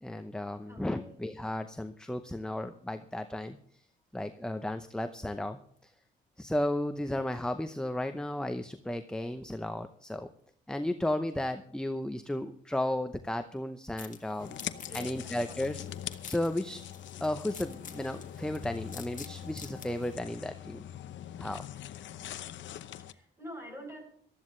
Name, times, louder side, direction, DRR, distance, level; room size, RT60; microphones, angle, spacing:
voice 1, 0.0-3.6 4.1-5.9 6.4-10.3 10.7-14.6 14.9-16.8 17.2-20.9 21.4-21.6, left 1 dB, 5° left, 8 dB, 0.7 m, -34 dB
voice 2, 0.7-1.1 14.9-15.6 23.0-24.0, equal, 15° right, 2 dB, 7.9 m, -46 dB
sound 1, 14.0-20.2, left 6 dB, 40° left, 1.7 m, -50 dB
sound 2, 14.4-23.1, left 11 dB, 70° left, 0.8 m, -43 dB
18.5 x 13.5 x 3.2 m, 0.64 s
cardioid pair, 90°, 20 cm